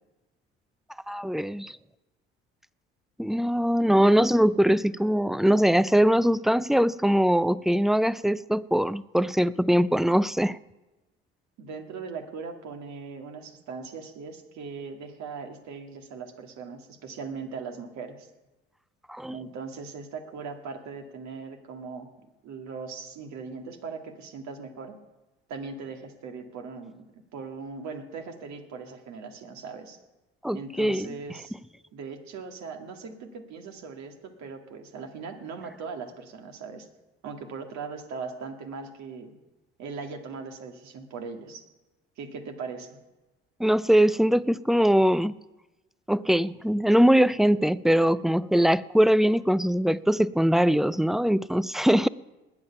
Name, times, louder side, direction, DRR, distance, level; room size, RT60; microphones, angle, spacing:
voice 1, 1.1-1.7 3.2-10.6 19.1-19.4 30.4-31.1 43.6-45.3 46.1-52.1, equal, ahead, 19 dB, 0.4 m, -22 dB
voice 2, 11.6-18.3 19.3-25.0 25.5-27.1 27.3-30.0 30.5-31.5 31.9-36.9 37.2-39.4 39.8-41.7 42.2-42.9, right 5 dB, 60° right, 5 dB, 2.1 m, -39 dB
20.0 x 8.8 x 5.9 m, 1.1 s
hypercardioid pair, 55°, 31 cm